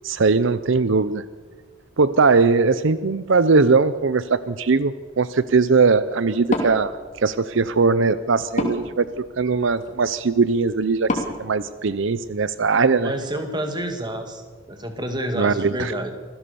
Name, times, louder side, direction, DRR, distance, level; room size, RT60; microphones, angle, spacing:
voice 1, 0.0-1.2 2.0-9.1 9.4-13.1 15.3-15.9, right 4 dB, 70° right, 15 dB, 0.6 m, -20 dB
Wood, 6.4-12.5, left 1 dB, 35° left, 2.9 m, -32 dB
voice 2, 13.0-16.1, right 1 dB, 20° right, 6 dB, 2.2 m, -29 dB
25.5 x 16.0 x 7.0 m, 1.5 s
head